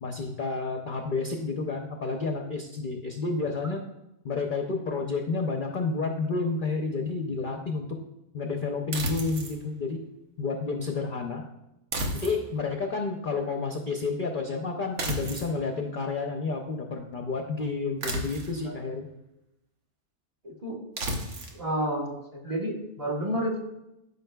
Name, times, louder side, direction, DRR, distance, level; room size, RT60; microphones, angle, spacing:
voice 1, 0.0-3.8 4.2-8.0 8.3-10.0 10.4-11.4 12.2-19.1, left 4 dB, 50° left, 3 dB, 0.6 m, -30 dB
sound 1, 8.9-9.6 11.9-12.7 15.0-15.6 18.0-18.7 21.0-21.6, right 1 dB, 80° right, 1.5 m, -32 dB
voice 2, 20.4-20.8 21.5-23.6, equal, 25° right, -1 dB, 1.1 m, -30 dB
13.0 x 5.4 x 2.3 m, 0.90 s
omnidirectional pair, 1.5 m